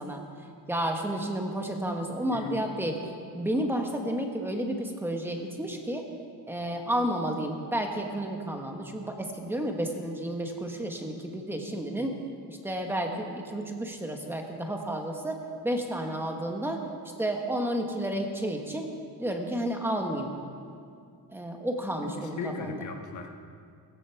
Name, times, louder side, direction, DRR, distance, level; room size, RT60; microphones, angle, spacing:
voice 1, 0.0-2.9 3.3-6.1 6.5-12.2 12.5-15.4 15.6-16.8 17.2-18.9 19.2-20.3 21.3-22.8, right 1 dB, 5° right, 2 dB, 1.3 m, -31 dB
voice 2, 2.3-2.6 22.0-22.1 22.4-23.3, left 4 dB, 45° left, 3 dB, 1.6 m, -36 dB
17.5 x 16.0 x 4.6 m, 2.3 s
cardioid pair, 180°, 41 cm